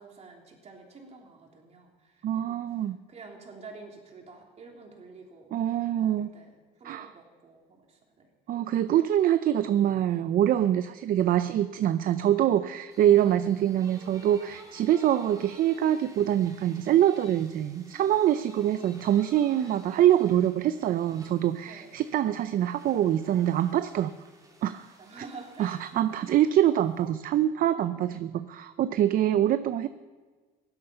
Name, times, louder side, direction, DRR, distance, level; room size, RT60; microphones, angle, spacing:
voice 1, 0.0-2.6 3.1-6.1 6.3-6.5 6.8-8.3 18.6-19.2 21.6-21.9 25.0-26.4 27.9-28.1, right 4 dB, 40° right, 0 dB, 3.3 m, -49 dB
voice 2, 2.2-3.0 5.5-6.3 6.8-7.1 8.5-24.1 24.6-24.9 25.2-25.3 25.6-29.9, right 11 dB, 55° right, 12 dB, 0.5 m, -24 dB
sound 1, 12.9-27.1, right 2 dB, 20° right, 2.6 m, -53 dB
16.5 x 12.0 x 5.6 m, 1.4 s
cardioid pair, 110°, 17 cm